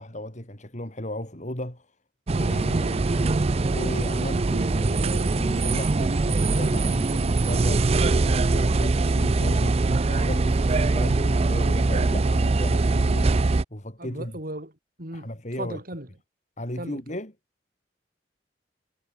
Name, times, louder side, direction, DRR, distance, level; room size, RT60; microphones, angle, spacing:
voice 1, 0.0-1.9 2.3-14.4 15.1-15.8 16.6-17.3, left 1 dB, 40° left, 6.0 m, -35 dB
sound 1, 2.3-13.6, right 3 dB, 35° right, 0.5 m, -22 dB
voice 2, 14.0-14.7 15.0-16.1 16.8-17.0, right 1 dB, 55° right, 6.3 m, -36 dB
head